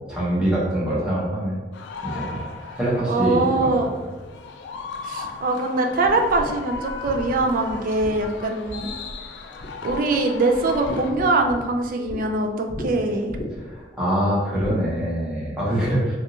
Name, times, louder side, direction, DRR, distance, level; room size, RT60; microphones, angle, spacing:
voice 1, 0.0-1.6 2.0-2.4 2.8-3.9 13.6-16.1, right 1 dB, 5° right, -8 dB, 1.0 m, -24 dB
sound 1, 1.7-11.1, left 4 dB, 85° left, 0.3 m, -37 dB
voice 2, 3.1-3.9 5.0-8.9 9.8-13.4, right 2 dB, 50° right, 4 dB, 0.4 m, -22 dB
sound 2, 6.0-9.3 9.6-10.2 10.5-12.2 12.7-12.9 13.3-13.8 14.6-14.8, equal, 50° left, 0.7 m, -35 dB
3.5 x 2.4 x 2.8 m, 1.2 s
head